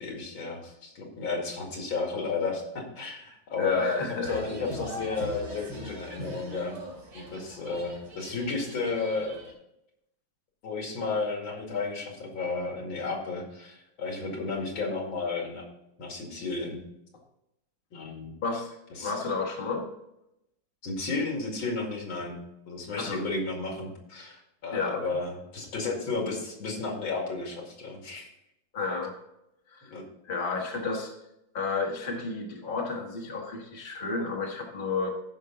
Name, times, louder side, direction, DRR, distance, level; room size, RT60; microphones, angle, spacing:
voice 1, 0.0-6.8 7.1-9.4 10.6-15.6 16.0-16.8 17.9-18.3 19.0-19.1 20.8-22.4 22.7-28.3 29.9-30.0, left 3 dB, 75° left, 0 dB, 3.0 m, -33 dB
voice 2, 3.5-4.4 18.4-18.7 19.0-19.9 23.0-23.2 24.7-25.0 28.7-29.1 29.7-29.9 30.2-31.1 31.5-35.1, left 4 dB, 30° left, 0 dB, 1.5 m, -31 dB
sound 1, 4.2-9.5, equal, 55° right, 3.5 m, -41 dB
14.5 x 5.5 x 3.9 m, 0.84 s
omnidirectional pair, 2.2 m